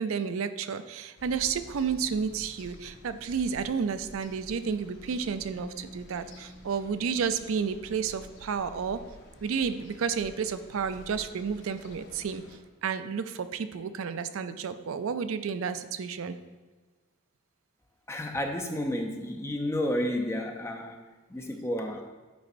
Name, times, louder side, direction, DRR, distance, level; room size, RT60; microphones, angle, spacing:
voice 1, 0.0-9.0 9.4-12.4 12.8-16.4, right 6 dB, 70° right, 11 dB, 0.4 m, -31 dB
sound 1, 1.2-12.6, left 1 dB, 55° left, 0.8 m, -50 dB
voice 2, 18.1-22.1, left 1 dB, 10° left, 3 dB, 0.5 m, -31 dB
9.3 x 5.1 x 2.6 m, 1.3 s
head